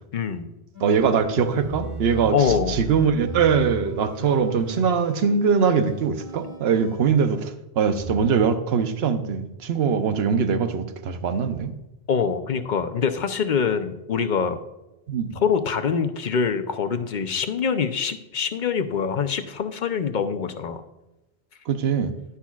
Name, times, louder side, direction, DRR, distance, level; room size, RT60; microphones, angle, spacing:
voice 1, 0.1-0.5 2.3-2.8 12.1-14.6 15.3-20.8, left 6 dB, 50° left, 9 dB, 0.7 m, -24 dB
sound 1, 0.7-7.4 8.0-8.3, right 1 dB, 50° right, 3.2 m, -36 dB
voice 2, 0.8-2.4 2.7-11.7 15.1-15.4 21.7-22.1, right 6 dB, 75° right, 9 dB, 1.0 m, -22 dB
11.0 x 10.0 x 2.4 m, 0.99 s
omnidirectional pair, 1.1 m